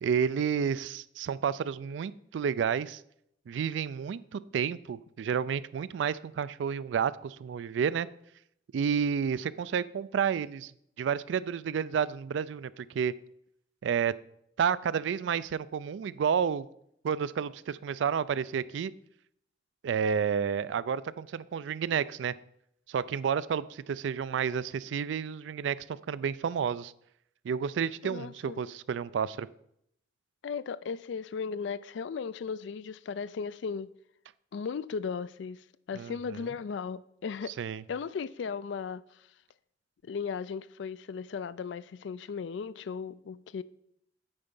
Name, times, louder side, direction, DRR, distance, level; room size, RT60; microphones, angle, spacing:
voice 1, 0.0-3.0 3.5-8.1 8.7-10.7 11.0-13.1 13.8-14.1 14.6-16.7 17.0-18.9 19.8-22.3 22.9-26.9 27.4-29.5 36.0-36.2 37.6-37.8, right 7 dB, 70° right, 0.3 m, -30 dB
voice 2, 28.0-28.6 30.4-33.9 34.5-37.5 37.9-39.2 40.0-43.6, left 5 dB, 70° left, 0.3 m, -36 dB
8.7 x 4.4 x 5.4 m
head